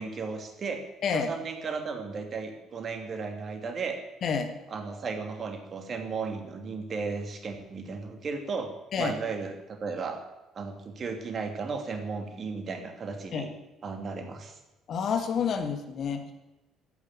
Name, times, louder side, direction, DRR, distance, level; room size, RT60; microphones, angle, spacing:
voice 1, 0.0-0.8 1.1-4.0 4.7-10.2 10.5-13.5 13.8-14.6, right 4 dB, 45° right, 5 dB, 2.8 m, -35 dB
voice 2, 4.2-4.5 8.9-9.1 13.3-13.5 14.9-16.3, left 6 dB, 50° left, 7 dB, 2.0 m, -29 dB
13.0 x 9.5 x 9.0 m, 1.0 s
figure-of-eight pair, 50°, 0 cm